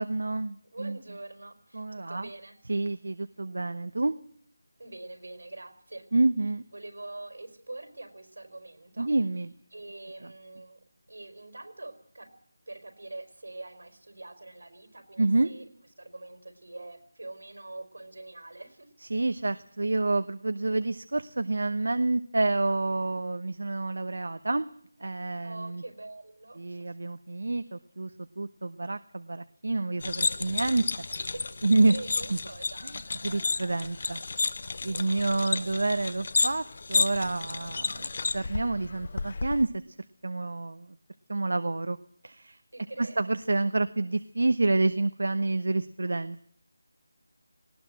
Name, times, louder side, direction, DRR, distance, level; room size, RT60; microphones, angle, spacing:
voice 1, 0.0-1.0 1.7-2.3 2.7-4.1 6.1-6.6 9.0-9.5 10.2-10.3 15.2-15.5 19.0-24.7 25.0-25.8 26.6-28.1 28.4-30.8 31.6-31.9 32.3-32.4 33.2-34.2 34.8-39.7 40.2-40.9 41.3-42.0 42.2-42.6 43.0-46.4, right 2 dB, 70° right, 12 dB, 0.9 m, -28 dB
voice 2, 0.6-2.6 4.8-6.1 6.7-9.1 9.7-10.8 11.1-12.3 12.7-15.7 16.0-18.9 25.4-26.9 31.2-32.9 34.8-36.1 42.7-43.4, right 2 dB, 85° right, 9 dB, 4.4 m, -44 dB
sound 1, 30.0-39.6, left 3 dB, 40° left, 0.9 m, -32 dB
19.5 x 18.0 x 7.6 m, 0.62 s
figure-of-eight pair, 175°, 0 cm